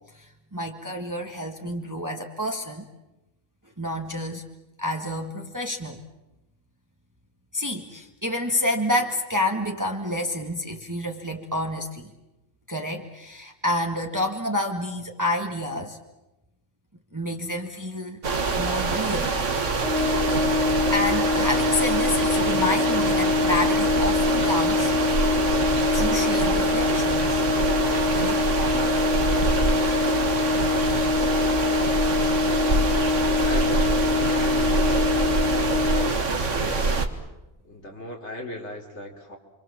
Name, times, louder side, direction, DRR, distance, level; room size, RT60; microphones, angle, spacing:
voice 1, 0.1-2.9 3.8-4.4 4.8-6.0 7.5-12.1 12.7-16.0 17.1-18.2 18.6-19.4 20.9-24.9 25.9-27.4 28.1-28.5, left 1 dB, 15° right, 2 dB, 1.8 m, -29 dB
sound 1, 18.2-37.1, right 3 dB, 80° right, 2.1 m, -25 dB
Brass instrument, 19.8-36.2, left 5 dB, 5° left, 1.1 m, -24 dB
voice 2, 33.4-33.8 34.3-37.0 37.6-39.4, left 1 dB, 65° left, 0 dB, 3.7 m, -38 dB
29.0 x 25.0 x 7.3 m, 0.96 s
omnidirectional pair, 1.3 m